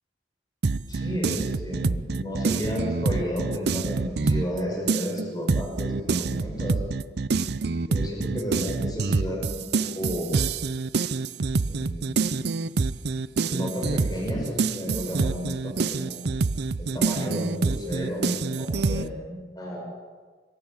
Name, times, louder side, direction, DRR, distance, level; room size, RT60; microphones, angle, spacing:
sound 1, 0.6-4.6 4.9-19.0, right 4 dB, 60° right, 0.6 m, -26 dB
voice 1, 0.9-6.8 7.9-10.4 11.7-12.5 13.5-16.2 16.8-19.8, equal, 20° left, -2 dB, 6.3 m, -32 dB
23.0 x 13.0 x 8.9 m, 1.4 s
head